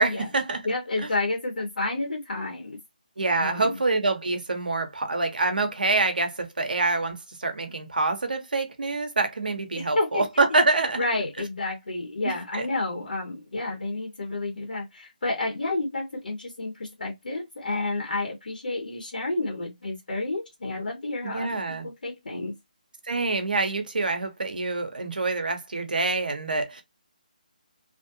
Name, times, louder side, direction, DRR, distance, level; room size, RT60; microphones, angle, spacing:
voice 1, 0.0-0.6 3.2-11.0 12.2-12.7 21.2-21.9 23.1-26.8, right 3 dB, 80° right, 1.1 m, -26 dB
voice 2, 0.6-2.8 3.4-3.8 9.8-10.2 11.0-22.5, left 2 dB, 75° left, 1.3 m, -30 dB
3.1 x 2.7 x 2.7 m
figure-of-eight pair, 155°, 5 cm